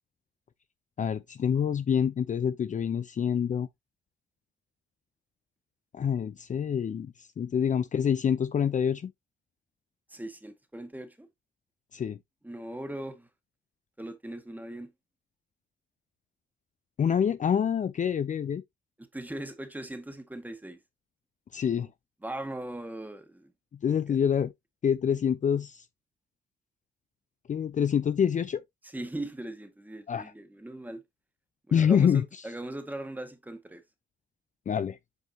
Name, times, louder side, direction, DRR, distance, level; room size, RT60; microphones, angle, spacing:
voice 1, 1.0-3.7 5.9-9.1 11.9-12.2 17.0-18.6 21.5-21.9 23.8-24.5 24.8-25.8 27.5-28.6 30.1-30.3 31.7-32.4 34.7-35.0, left 8 dB, 40° left, 0.6 m, -26 dB
voice 2, 10.1-11.3 12.4-13.3 14.0-14.9 19.0-20.8 22.2-23.5 24.1-24.2 28.8-31.0 31.7-33.8, right 1 dB, 10° right, 1.7 m, -39 dB
7.9 x 5.2 x 2.8 m
cardioid pair, 90°, 20 cm